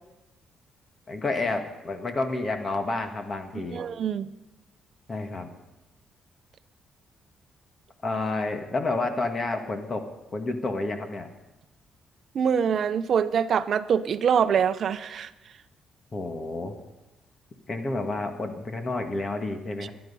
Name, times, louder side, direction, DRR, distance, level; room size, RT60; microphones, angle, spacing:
voice 1, 1.1-3.8 5.1-5.5 8.0-10.0 10.3-11.3 16.1-16.8 17.7-19.9, left 2 dB, 30° left, 6 dB, 1.6 m, -30 dB
voice 2, 3.7-4.3 12.3-15.3, right 7 dB, 55° right, 12 dB, 0.7 m, -24 dB
24.0 x 10.5 x 5.5 m, 1.0 s
cardioid pair, 140°, 0 cm